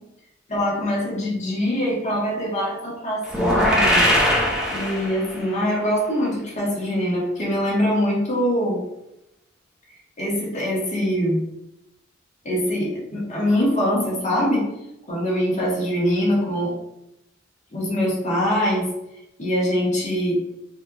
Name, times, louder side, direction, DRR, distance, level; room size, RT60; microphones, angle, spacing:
voice 1, 0.5-4.0 4.7-8.8 10.2-11.4 12.4-14.7 15.1-16.7 17.7-18.9 19.4-20.4, equal, 35° left, -6 dB, 1.3 m, -23 dB
sound 1, 3.3-5.5, equal, 5° right, 0.6 m, -20 dB
4.1 x 2.6 x 2.4 m, 0.86 s
head